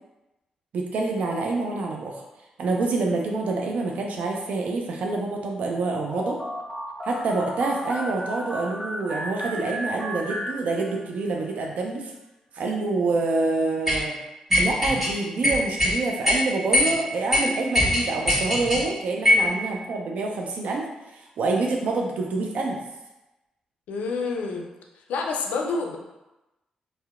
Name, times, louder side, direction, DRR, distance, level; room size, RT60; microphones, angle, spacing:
voice 1, 0.7-2.2 2.6-6.4 7.0-12.1 12.5-14.1 14.6-20.8 21.1-22.8, right 3 dB, 70° right, 0 dB, 0.3 m, -27 dB
sound 1, 6.1-11.2, equal, ahead, 0.4 m, -34 dB
sound 2, 13.9-14.0 14.5-15.1 15.4-15.9 16.2-16.4 16.7-16.9 17.3-17.4 17.7-18.8 19.2-19.5, left 1 dB, 20° right, 1.3 m, -20 dB
voice 2, 23.9-24.7 25.1-26.0, left 4 dB, 80° left, 2 dB, 0.3 m, -28 dB
2.7 x 2.0 x 2.4 m, 0.99 s
supercardioid pair, 50°, 3 cm